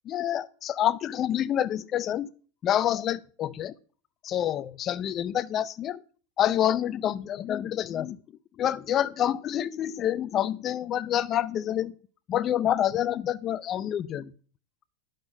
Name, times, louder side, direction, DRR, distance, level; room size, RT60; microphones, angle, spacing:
voice 1, 0.1-2.3 2.6-3.7 4.2-6.0 6.4-8.2 8.6-11.9 12.3-14.3, left 11 dB, 35° left, 0.5 m, -27 dB
10.5 x 6.6 x 5.4 m
supercardioid pair, 135°, 0 cm